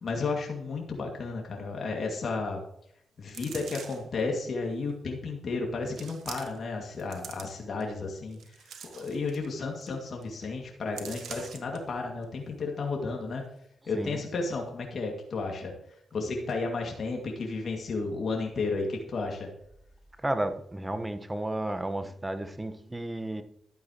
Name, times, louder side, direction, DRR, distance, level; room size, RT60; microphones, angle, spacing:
voice 1, 0.0-2.6 3.2-13.4 13.9-19.5, left 3 dB, 60° left, 2.2 m, -33 dB
sound 1, 3.3-4.1 4.9-5.0 5.9-6.7 7.0-7.8 8.3-9.5 9.8-9.9 10.2-10.4 11.0-11.8 12.2-12.3, right 7 dB, 75° right, 1.1 m, -44 dB
voice 2, 20.2-23.4, right 1 dB, 20° right, 1.2 m, -32 dB
12.5 x 8.7 x 3.0 m
supercardioid pair, 50°, 0 cm